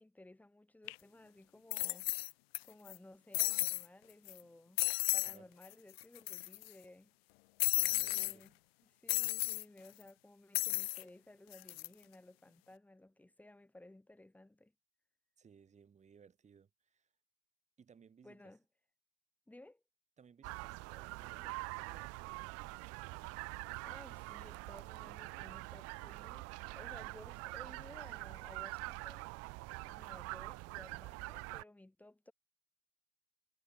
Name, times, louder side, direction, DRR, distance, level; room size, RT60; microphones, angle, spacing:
voice 1, 0.0-2.1 2.6-4.8 5.1-7.1 7.7-8.5 8.8-14.7 18.2-18.6 19.5-19.8 23.4-23.5 23.8-29.3 29.8-32.3, left 1 dB, 5° left, 6.4 m, -58 dB
sound 1, 0.9-1.0 1.7-2.6 2.9-3.0 3.3-3.9 4.3-4.4 4.8-5.4 5.6-5.7 6.0-6.7 7.6-8.3 9.1-9.6 10.5-11.0 11.5-11.9, left 21 dB, 70° left, 0.8 m, -34 dB
voice 2, 7.8-8.5 15.4-17.1 17.8-18.5 20.2-22.5, right 6 dB, 20° right, 7.2 m, -62 dB
sound 2, 20.4-31.6, right 25 dB, 50° right, 2.2 m, -45 dB
supercardioid pair, 120°, 31 cm